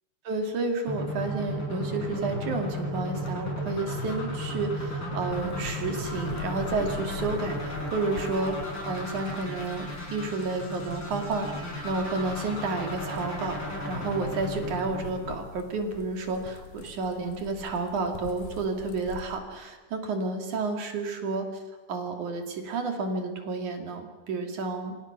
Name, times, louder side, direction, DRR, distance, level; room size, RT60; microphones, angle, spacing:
voice 1, 0.3-8.6 8.8-11.5 11.8-13.6 13.9-21.5 21.9-25.1, right 3 dB, 65° right, 4 dB, 3.8 m, -31 dB
sound 1, 0.9-15.8, left 1 dB, 35° left, 6.1 m, -34 dB
sound 2, 5.3-19.3, left 7 dB, 75° left, 2.9 m, -45 dB
26.5 x 26.5 x 6.0 m, 1.3 s
omnidirectional pair, 3.7 m